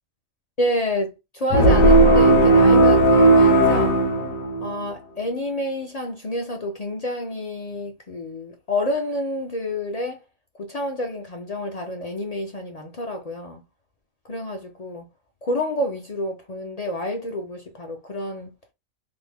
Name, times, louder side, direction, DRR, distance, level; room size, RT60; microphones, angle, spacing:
voice 1, 0.6-4.0 4.6-10.2 10.6-13.6 14.2-15.1 15.4-18.5, left 1 dB, 55° left, 0.4 m, -29 dB
sound 1, 1.5-4.9, right 2 dB, 75° left, 1.3 m, -15 dB
3.5 x 2.0 x 3.3 m
omnidirectional pair, 1.4 m